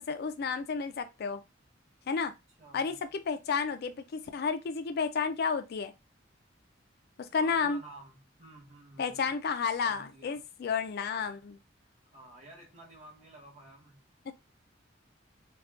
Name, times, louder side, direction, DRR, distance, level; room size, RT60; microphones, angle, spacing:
voice 1, 0.0-1.4 2.1-2.3 2.7-5.9 7.2-7.8 9.0-11.6 14.3-14.4, left 5 dB, 55° left, 0.4 m, -31 dB
voice 2, 2.6-3.0 7.4-9.3 9.8-10.4 12.1-14.0, right 1 dB, 35° right, 1.6 m, -52 dB
3.5 x 2.3 x 2.4 m
head